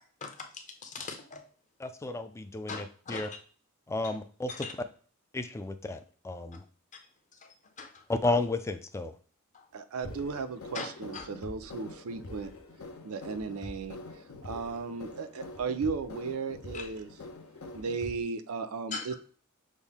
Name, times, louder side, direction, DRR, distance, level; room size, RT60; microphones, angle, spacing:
voice 1, 0.2-1.4 2.7-3.4 4.0-4.1 4.5-4.7 7.4-8.0 9.5-9.6 10.7-11.2 16.7-16.9 18.9-19.1, left 4 dB, 35° left, 3 dB, 0.8 m, -41 dB
voice 2, 1.8-3.3 3.9-4.5 5.3-6.0 6.2-6.6 8.1-9.1, left 2 dB, 15° left, 8 dB, 0.3 m, -32 dB
voice 3, 9.7-12.5 13.0-14.0 14.4-17.1 17.7-19.1, right 4 dB, 75° right, 11 dB, 0.5 m, -35 dB
sound 1, 10.0-18.2, left 2 dB, 70° left, 0.7 m, -45 dB
6.2 x 2.1 x 3.5 m, 0.42 s
head